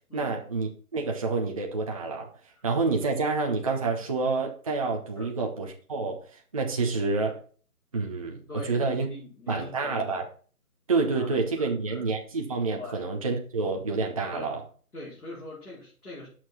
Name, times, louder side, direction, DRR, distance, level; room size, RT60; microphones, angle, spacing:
voice 1, 0.1-2.3 2.6-6.2 6.5-7.4 7.9-9.1 9.5-10.2 10.9-14.6, right 3 dB, 25° right, 0.6 m, -28 dB
voice 2, 8.5-10.2 11.1-12.0 12.8-13.1 14.3-14.5 14.9-16.3, left 2 dB, 80° left, 4.4 m, -43 dB
6.4 x 5.9 x 4.2 m
figure-of-eight pair, 145°, 45 cm